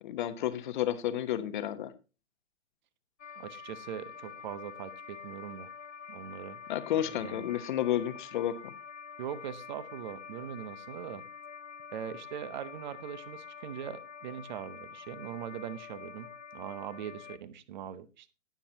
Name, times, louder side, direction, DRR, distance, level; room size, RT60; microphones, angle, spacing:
voice 1, 0.0-1.9 6.7-8.7, left 11 dB, 40° left, 11 dB, 1.1 m, -31 dB
sound 1, 3.2-17.4, left 6 dB, 70° left, 1.0 m, -47 dB
voice 2, 3.4-5.7 6.1-6.6 6.9-7.4 9.2-11.2 11.9-18.3, right 9 dB, 35° right, 16 dB, 0.9 m, -41 dB
18.0 x 7.1 x 2.9 m, 0.30 s
figure-of-eight pair, 130°, 38 cm